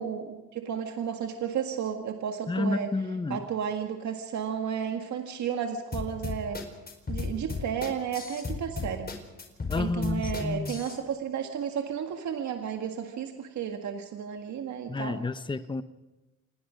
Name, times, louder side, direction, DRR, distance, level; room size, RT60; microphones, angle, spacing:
voice 1, 0.0-2.9 3.3-6.6 7.1-9.1 9.8-15.2, right 8 dB, 70° right, 4 dB, 1.9 m, -33 dB
voice 2, 2.5-3.4 9.7-10.8 14.9-15.8, left 3 dB, 15° left, 12 dB, 0.9 m, -30 dB
sound 1, 5.9-11.0, left 4 dB, 30° left, 4.5 m, -34 dB
27.0 x 19.5 x 5.2 m, 1.1 s
cardioid pair, 90°, 30 cm